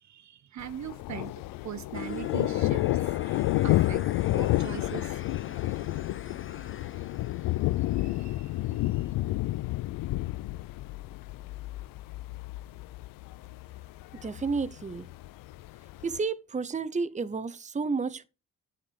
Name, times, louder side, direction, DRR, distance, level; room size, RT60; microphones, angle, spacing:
voice 1, 0.0-5.2 5.7-5.9 7.9-9.1, right 10 dB, 50° right, 0.9 m, -42 dB
Thunder, 0.6-16.2, left 17 dB, 65° left, 0.5 m, -30 dB
sound 1, 1.9-8.9, left 6 dB, 35° left, 1.1 m, -44 dB
voice 2, 14.2-15.1 16.0-18.3, right 4 dB, 20° right, 0.9 m, -31 dB
7.2 x 6.6 x 7.0 m
supercardioid pair, 60°, 36 cm